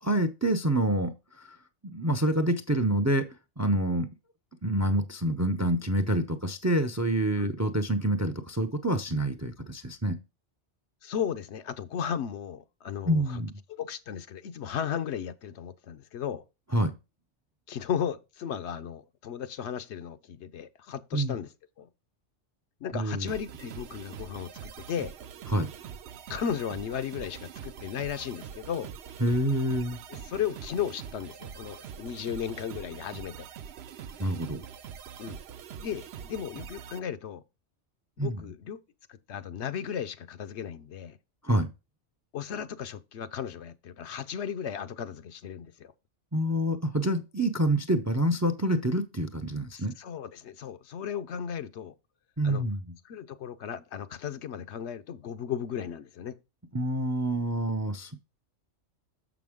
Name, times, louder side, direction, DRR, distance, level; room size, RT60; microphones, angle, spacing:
voice 1, 0.0-1.6 1.8-3.3 3.6-4.1 4.6-10.2 13.0-13.5 16.7-16.9 21.1-21.4 22.9-23.3 25.5-25.7 29.2-30.0 34.2-34.6 38.2-38.4 41.4-41.7 46.3-49.9 52.4-52.9 56.7-58.2, right 1 dB, 25° right, 0.4 m, -27 dB
voice 2, 11.0-13.4 13.7-16.4 17.7-21.5 21.8-21.9 22.8-25.1 26.3-28.9 30.1-33.5 35.2-35.4 35.7-37.4 38.2-38.8 39.1-41.2 42.3-45.9 49.7-51.9 52.4-52.6 53.1-56.4, left 8 dB, 75° left, 0.9 m, -35 dB
sound 1, 23.3-37.0, right 8 dB, 65° right, 0.8 m, -44 dB
6.9 x 6.0 x 3.6 m
omnidirectional pair, 1.2 m